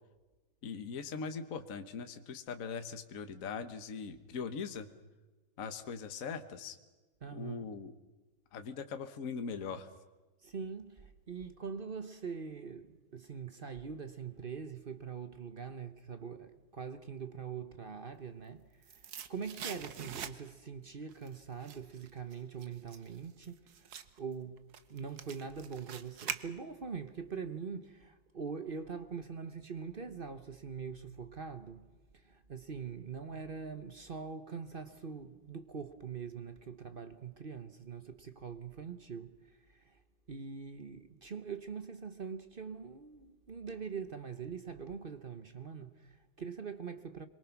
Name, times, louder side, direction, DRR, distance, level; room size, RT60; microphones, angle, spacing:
voice 1, 0.6-4.9 5.6-6.8 7.3-7.9 8.5-9.9, left 5 dB, 45° left, 1.5 m, -41 dB
voice 2, 7.2-7.7 10.4-24.6 24.9-40.0 40.3-47.3, right 6 dB, 35° right, 0.9 m, -43 dB
sound 1, 18.3-20.7 21.1-27.0 27.3-27.4, right 8 dB, 60° right, 1.5 m, -45 dB
25.5 x 23.0 x 6.0 m
omnidirectional pair, 2.1 m